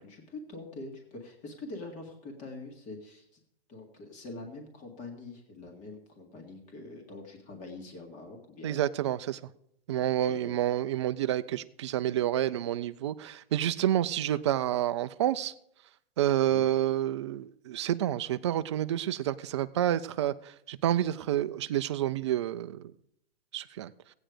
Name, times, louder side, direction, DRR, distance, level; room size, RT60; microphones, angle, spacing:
voice 1, 0.0-3.4 3.7-8.8 9.9-10.5 16.5-16.7, left 2 dB, 25° left, 2.1 m, -44 dB
voice 2, 8.6-9.5 9.9-15.5 16.2-22.9 23.5-23.9, right 12 dB, 30° right, 0.3 m, -29 dB
15.5 x 9.0 x 5.0 m
hypercardioid pair, 150°, 31 cm